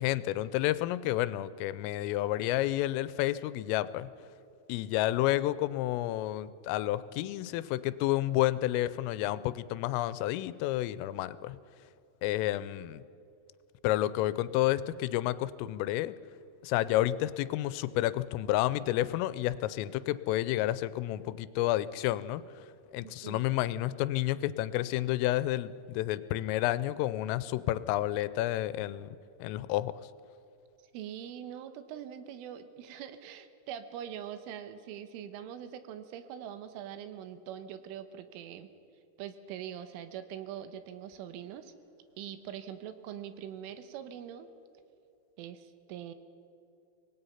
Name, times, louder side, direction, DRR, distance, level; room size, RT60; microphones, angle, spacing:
voice 1, 0.0-4.1 4.7-11.6 12.2-13.0 13.8-16.2 16.6-22.4 22.9-29.1 29.4-29.9, left 15 dB, 90° left, 16 dB, 3.2 m, -30 dB
voice 2, 23.0-23.4 30.9-38.7 39.2-41.7 42.2-44.5 45.4-46.1, right 9 dB, 80° right, 10 dB, 3.5 m, -43 dB
25.0 x 19.5 x 5.7 m, 2.6 s
omnidirectional pair, 5.7 m